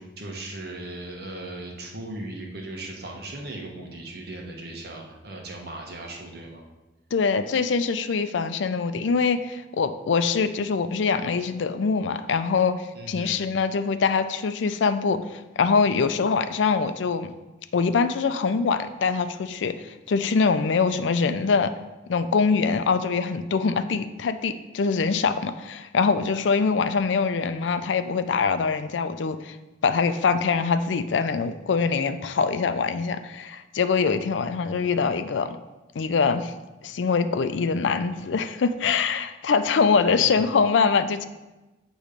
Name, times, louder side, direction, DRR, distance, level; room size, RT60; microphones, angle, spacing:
voice 1, 0.0-6.6 12.9-13.4 40.1-40.5, right 1 dB, 60° right, 0 dB, 1.1 m, -38 dB
voice 2, 7.1-12.7 13.1-17.3 17.7-21.7 22.1-29.6 29.8-35.6 36.0-36.5 36.8-41.2, left 5 dB, 85° left, 11 dB, 0.4 m, -23 dB
8.2 x 3.1 x 5.1 m, 1.1 s
head